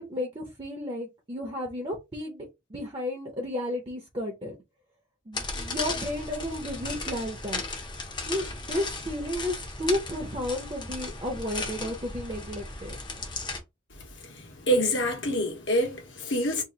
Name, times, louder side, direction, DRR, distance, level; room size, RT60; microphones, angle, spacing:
voice 1, 0.0-4.6 5.3-7.6 8.3-13.0, left 1 dB, 30° right, 0.7 m, -33 dB
sound 1, 5.3-13.6, left 3 dB, 25° left, 0.7 m, -36 dB
voice 2, 14.3-16.6, equal, 75° left, 1.2 m, -26 dB
2.9 x 2.5 x 3.8 m
head